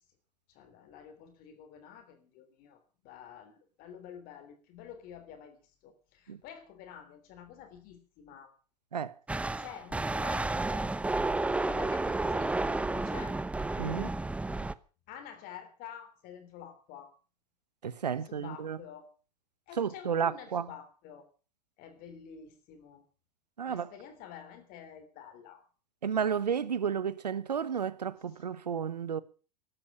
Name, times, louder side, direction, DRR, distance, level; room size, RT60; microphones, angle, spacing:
voice 1, 0.5-8.5 9.6-10.9 11.7-13.4 15.1-17.1 18.1-19.1 19.7-21.2 21.8-23.0 23.7-25.7 28.3-28.4, left 9 dB, 45° left, 3.3 m, -49 dB
sound 1, 9.3-14.7, right 2 dB, 5° right, 0.8 m, -31 dB
voice 2, 13.8-14.1 17.8-18.8 19.8-20.7 23.6-23.9 26.0-29.2, right 7 dB, 80° right, 1.2 m, -32 dB
15.0 x 12.5 x 6.8 m
figure-of-eight pair, 90°, 21 cm